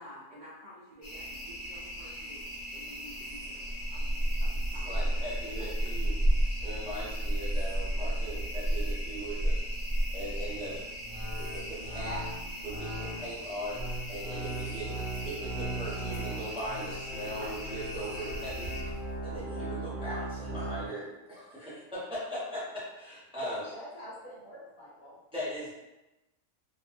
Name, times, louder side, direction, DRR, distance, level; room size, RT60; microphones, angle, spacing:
voice 1, 0.0-2.4 2.7-5.4, equal, 90° right, -7 dB, 0.4 m, -51 dB
sound 1, 1.0-18.8, right 1 dB, 60° left, 1.1 m, -34 dB
voice 2, 4.8-6.1 6.6-9.6 10.1-10.8 11.5-12.2 12.6-12.9 13.2-14.9 15.2-18.7 19.2-23.6 25.3-25.7, right 1 dB, 5° right, -8 dB, 0.4 m, -39 dB
sound 2, 10.4-20.9, right 1 dB, 60° right, 0.8 m, -39 dB
sound 3, 14.1-19.4, right 1 dB, 35° left, 1.1 m, -48 dB
voice 3, 23.4-25.2, equal, 90° left, -6 dB, 1.4 m, -45 dB
2.9 x 2.2 x 2.4 m, 1.0 s
omnidirectional pair, 1.5 m